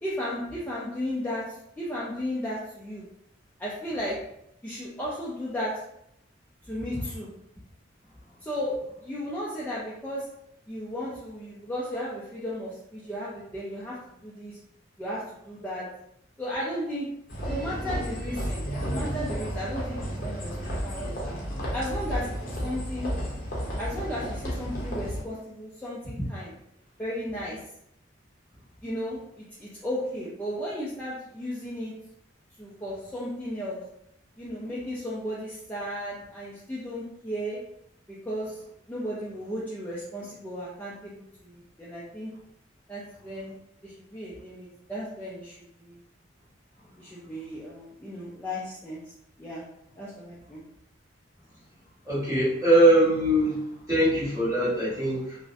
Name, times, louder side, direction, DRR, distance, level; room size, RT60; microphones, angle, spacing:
voice 1, 0.0-3.0 3.6-4.2 4.6-5.8 6.6-7.3 8.4-8.7 9.0-10.3 10.7-14.6 15.0-15.9 16.4-17.1 17.5-20.5 20.8-21.3 21.7-23.1 23.8-26.5 27.0-27.6 28.8-31.9 32.6-33.8 34.4-37.6 38.1-38.6 38.9-42.3 42.9-43.6 43.8-46.0 47.0-49.0 49.4-49.6 50.0-50.6, equal, 10° left, -8 dB, 0.4 m, -35 dB
sound 1, 17.3-25.2, equal, 50° left, 0.7 m, -32 dB
voice 2, 52.1-53.6 53.9-55.4, right 1 dB, 15° right, -10 dB, 1.2 m, -22 dB
2.4 x 2.0 x 2.5 m, 0.76 s
head